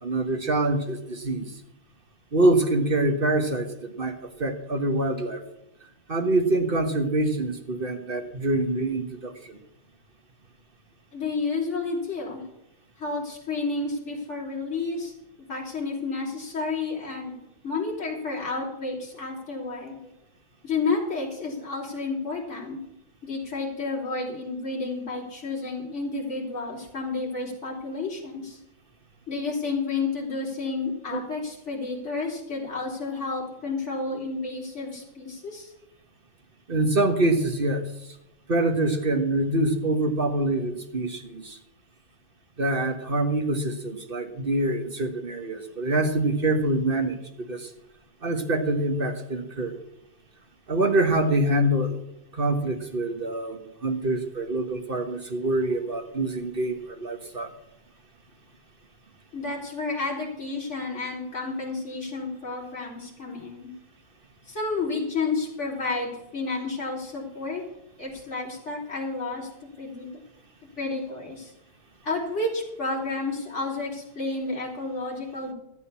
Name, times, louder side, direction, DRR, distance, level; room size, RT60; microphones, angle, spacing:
voice 1, 0.0-1.5 2.3-5.4 6.1-9.6 31.1-31.2 36.7-37.9 38.5-41.6 42.6-47.2 47.5-47.7 48.2-49.8 50.7-52.0 52.3-57.5, right 2 dB, 30° right, 5 dB, 1.3 m, -25 dB
voice 2, 11.1-12.4 13.0-15.1 15.4-17.4 17.6-20.0 20.6-22.8 23.2-28.6 29.3-35.7 59.3-63.7 64.5-67.6 68.0-69.5 69.8-70.1 70.8-71.5 72.0-75.5, left 3 dB, 30° left, -2 dB, 4.2 m, -31 dB
13.5 x 8.2 x 7.1 m, 0.85 s
omnidirectional pair, 2.3 m